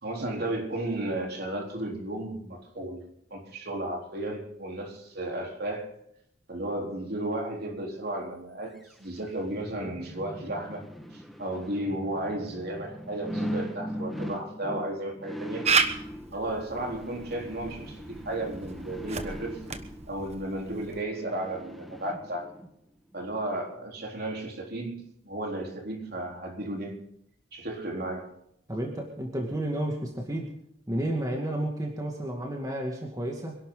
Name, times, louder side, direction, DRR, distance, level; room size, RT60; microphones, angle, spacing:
voice 1, 0.0-3.1 3.3-5.9 6.5-10.8 11.1-15.7 16.3-19.6 20.1-22.5 23.1-27.0 27.5-28.3, right 1 dB, 50° right, 1 dB, 3.8 m, -34 dB
sound 1, 8.8-22.7 23.1-23.2, equal, ahead, 1.5 m, -40 dB
Camera, 15.6-21.0, right 5 dB, 35° right, 1.2 m, -32 dB
voice 2, 28.7-30.5 30.9-33.6, right 1 dB, 15° right, 0 dB, 2.3 m, -31 dB
26.5 x 12.0 x 3.9 m, 0.74 s
head